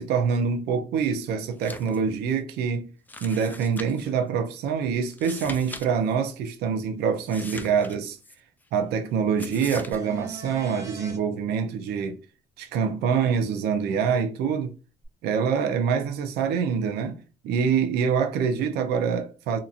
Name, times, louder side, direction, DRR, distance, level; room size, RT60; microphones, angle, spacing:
voice 1, 0.0-2.9 3.2-8.2 8.7-12.2 12.6-14.7 15.2-19.6, right 6 dB, 75° right, 0.5 m, -25 dB
sound 1, 1.5-2.0 2.3-2.4 3.1-4.1 5.1-5.9 6.1-6.2 7.2-8.4 9.4-10.0, left 2 dB, 10° left, 0.3 m, -41 dB
sound 2, 9.9-11.2 15.0-15.1, right 2 dB, 20° right, 0.9 m, -39 dB
2.8 x 2.5 x 2.3 m
cardioid pair, 110°, 17 cm